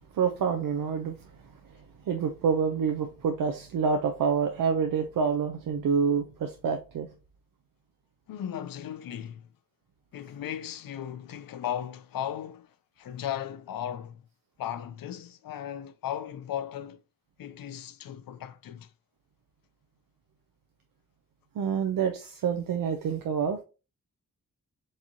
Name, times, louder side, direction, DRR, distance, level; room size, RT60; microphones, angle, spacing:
voice 1, 0.1-1.2 2.1-7.1 21.6-23.6, right 6 dB, 80° right, 0.6 m, -27 dB
voice 2, 8.3-9.5 10.1-14.2 14.6-17.0 17.4-18.9, left 10 dB, 90° left, 0.5 m, -36 dB
4.7 x 3.0 x 2.7 m
cardioid pair, 85°, 33 cm